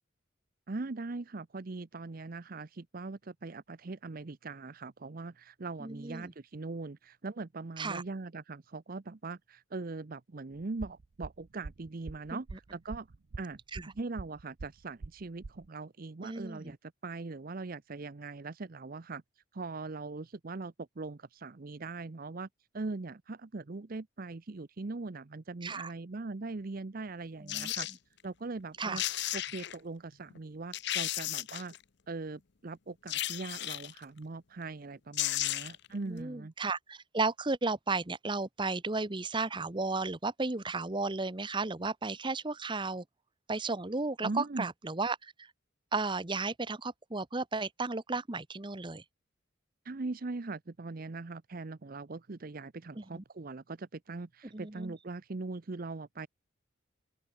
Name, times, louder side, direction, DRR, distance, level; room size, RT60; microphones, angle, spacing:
voice 1, 0.7-12.5 12.7-13.1 13.4-13.6 13.9-19.2 19.5-22.5 22.7-27.9 28.2-29.0 29.3-31.7 32.1-36.5 44.2-44.7 49.8-56.3, right 3 dB, 45° right, 0.6 m, -41 dB
voice 2, 5.8-6.3 7.8-8.0 12.3-12.4 13.7-13.9 16.2-16.7 25.6-25.9 27.4-27.7 28.8-29.0 35.9-43.0 43.5-45.5 45.9-49.0 53.0-53.2 54.5-55.0, right 3 dB, 25° right, 1.0 m, -34 dB
sound 1, 10.8-15.7, right 3 dB, 80° right, 0.7 m, -44 dB
sound 2, 27.5-28.0 28.7-28.8 29.0-29.8 30.3-30.4 30.7-31.8 33.1-34.0 34.8-34.9 35.1-35.9 36.2-36.3, left 14 dB, 55° left, 0.8 m, -34 dB
open air
head